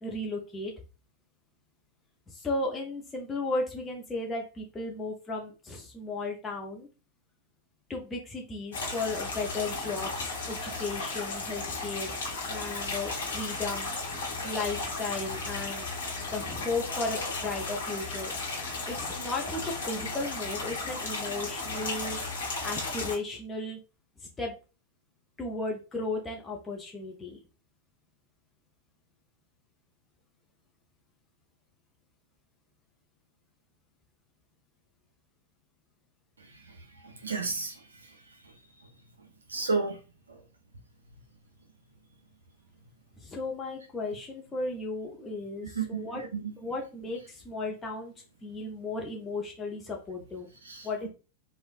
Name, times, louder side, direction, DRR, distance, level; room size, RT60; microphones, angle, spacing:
voice 1, 0.0-0.7 2.3-6.9 7.9-12.1 12.5-14.0 14.4-15.9 16.3-18.3 18.9-22.2 22.6-23.8 24.4-24.5 25.4-27.4 43.2-46.2 46.6-48.1 48.4-50.5 50.8-51.1, left 2 dB, 15° left, 0.5 m, -35 dB
sound 1, 8.7-23.2, left 3 dB, 65° left, 0.8 m, -35 dB
voice 2, 37.0-37.8 39.5-40.0 45.6-46.0 46.3-46.5 50.6-51.1, right 4 dB, 75° right, 0.4 m, -31 dB
3.0 x 2.0 x 2.3 m
figure-of-eight pair, 90°, 0 cm